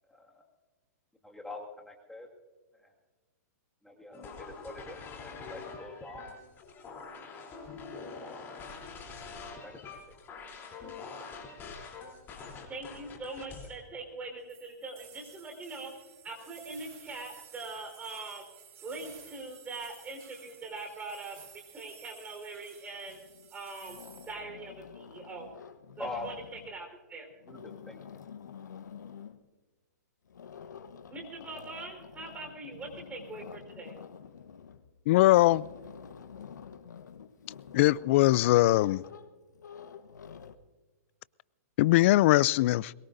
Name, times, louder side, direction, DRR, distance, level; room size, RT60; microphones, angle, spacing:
voice 1, 0.1-0.4 1.2-2.3 2.8-2.9 3.8-6.3 9.6-10.0 26.0-26.3 27.5-28.0, left 2 dB, 5° left, 2.0 m, -44 dB
sound 1, 4.1-13.7, left 4 dB, 25° left, 3.3 m, -45 dB
voice 2, 12.7-15.9 16.2-18.4 18.8-23.2 23.5-24.0 24.3-25.5 26.0-27.3 31.1-33.9, right 3 dB, 15° right, 4.1 m, -42 dB
sound 2, 14.5-24.3, right 8 dB, 50° right, 5.3 m, -54 dB
sound 3, 23.1-23.5 23.8-26.9 27.3-29.5 30.3-40.6, left 7 dB, 90° left, 1.0 m, -49 dB
voice 3, 35.1-35.7 37.7-39.0 41.8-42.9, left 17 dB, 45° left, 0.4 m, -21 dB
23.0 x 21.0 x 2.6 m
hypercardioid pair, 140°, 9 cm